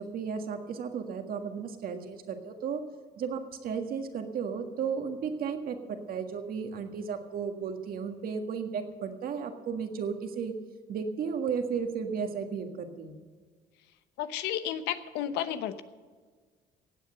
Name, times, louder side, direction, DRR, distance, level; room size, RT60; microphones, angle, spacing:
voice 1, 0.0-2.8 3.2-10.5 10.9-13.2, right 6 dB, 60° right, 6 dB, 1.7 m, -34 dB
voice 2, 14.2-15.8, left 10 dB, 90° left, 12 dB, 0.9 m, -32 dB
16.5 x 8.5 x 6.7 m, 1.5 s
cardioid pair, 110°, 17 cm